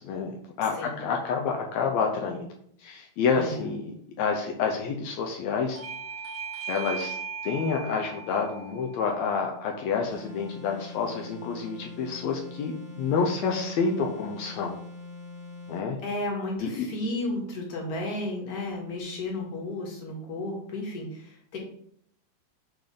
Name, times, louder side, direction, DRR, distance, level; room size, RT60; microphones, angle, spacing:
voice 1, 0.0-2.5 2.8-5.8 6.7-7.2 7.4-14.8 15.7-16.0 16.6-16.9, left 5 dB, 75° left, 2 dB, 1.9 m, -28 dB
voice 2, 0.7-1.1 3.3-3.6 16.0-21.6, left 2 dB, 35° left, -1 dB, 1.9 m, -33 dB
Bell / Doorbell, 5.8-10.9, right 6 dB, 65° right, 1.7 m, -39 dB
sound 1, 10.1-15.9, left 3 dB, 85° right, 2.8 m, -43 dB
10.5 x 3.5 x 3.9 m, 0.68 s
omnidirectional pair, 3.4 m